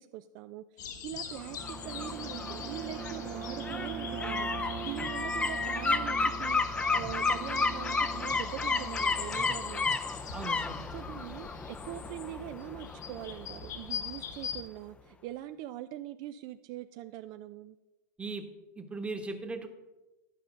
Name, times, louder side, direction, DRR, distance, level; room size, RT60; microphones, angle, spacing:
voice 1, 0.0-10.0 10.9-17.8, right 13 dB, 50° right, 11 dB, 0.4 m, -42 dB
sound 1, 0.8-14.6, left 7 dB, 80° left, 1.3 m, -43 dB
Bowed string instrument, 1.3-9.7, right 8 dB, 70° right, 1.1 m, -42 dB
sound 2, 1.4-14.2 14.5-14.6, left 4 dB, 10° left, 0.5 m, -33 dB
voice 2, 10.3-10.9 18.2-18.5 18.8-19.7, right 3 dB, 10° right, 6 dB, 1.1 m, -38 dB
11.5 x 5.1 x 5.6 m, 1.1 s
hypercardioid pair, 120°, 10 cm